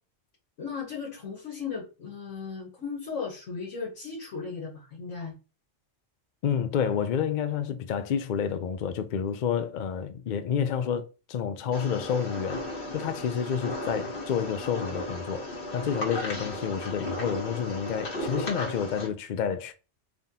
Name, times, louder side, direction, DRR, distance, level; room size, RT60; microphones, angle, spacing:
voice 1, 0.6-5.3, left 5 dB, 80° left, 1.4 m, -36 dB
voice 2, 6.4-12.6 12.9-19.7, left 7 dB, 65° left, 0.4 m, -29 dB
sound 1, 11.7-19.1, left 1 dB, 50° left, 1.3 m, -35 dB
3.7 x 3.6 x 2.7 m
omnidirectional pair, 1.3 m